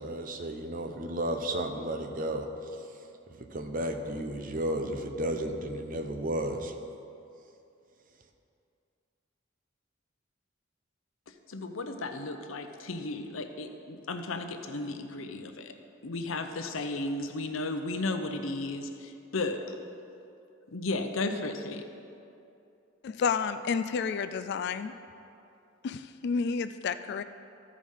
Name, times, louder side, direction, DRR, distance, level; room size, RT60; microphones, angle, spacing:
voice 1, 0.0-2.7 3.4-6.7, right 1 dB, 45° right, 5 dB, 0.7 m, -33 dB
voice 2, 11.5-15.7 16.0-19.6 20.7-21.8, left 2 dB, 80° left, 6 dB, 0.7 m, -34 dB
voice 3, 23.0-24.9 25.8-27.2, left 5 dB, 55° left, 12 dB, 0.3 m, -30 dB
14.0 x 5.0 x 5.5 m, 2.7 s
head